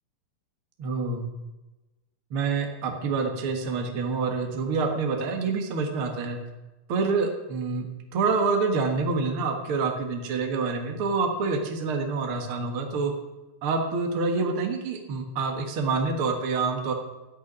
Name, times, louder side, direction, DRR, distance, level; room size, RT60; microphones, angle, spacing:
voice 1, 0.8-1.2 2.3-6.4 6.9-7.9 8.1-13.1 13.6-16.9, right 4 dB, 50° right, 3 dB, 1.7 m, -27 dB
13.0 x 6.8 x 9.8 m, 1.1 s
omnidirectional pair, 4.4 m